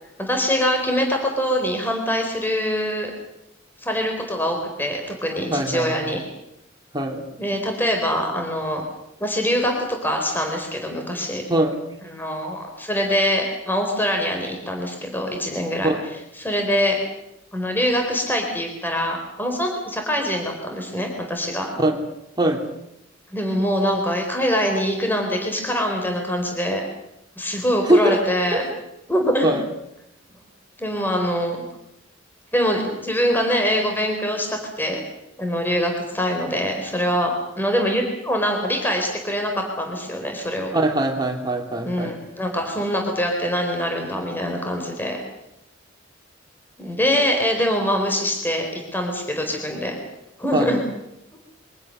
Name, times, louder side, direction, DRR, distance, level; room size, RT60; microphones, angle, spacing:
voice 1, 0.2-3.1 3.8-6.2 7.4-8.8 9.2-11.4 12.1-15.9 16.4-17.0 17.5-21.8 23.3-26.8 27.4-28.6 29.1-29.5 30.8-31.6 32.5-35.0 35.4-40.7 41.8-45.2 46.8-50.0 50.4-50.8, equal, 10° left, 2 dB, 4.2 m, -24 dB
voice 2, 5.5-6.1 6.9-7.3 11.5-11.8 15.8-16.1 21.8-22.0 22.4-22.7 27.9-28.2 28.5-28.8 29.4-29.7 40.7-42.2 50.5-50.8, right 1 dB, 20° right, 2 dB, 3.5 m, -22 dB
27.0 x 24.5 x 6.7 m, 0.84 s
head